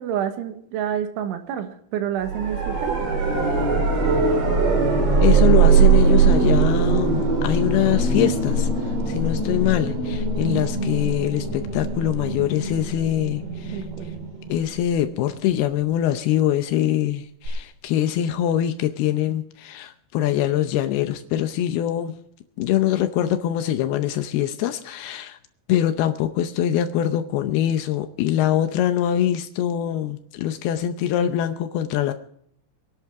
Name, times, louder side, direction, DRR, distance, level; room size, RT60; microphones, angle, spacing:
voice 1, 0.0-3.0 13.7-14.1, right 9 dB, 80° right, 7 dB, 3.7 m, -28 dB
sound 1, 2.2-15.1 17.5-17.6, right 5 dB, 50° right, 5.4 m, -21 dB
voice 2, 5.2-13.8 14.5-22.2 22.6-25.4 25.7-32.1, left 11 dB, 85° left, 8 dB, 2.2 m, -23 dB
24.5 x 11.0 x 3.6 m, 0.68 s
omnidirectional pair, 5.6 m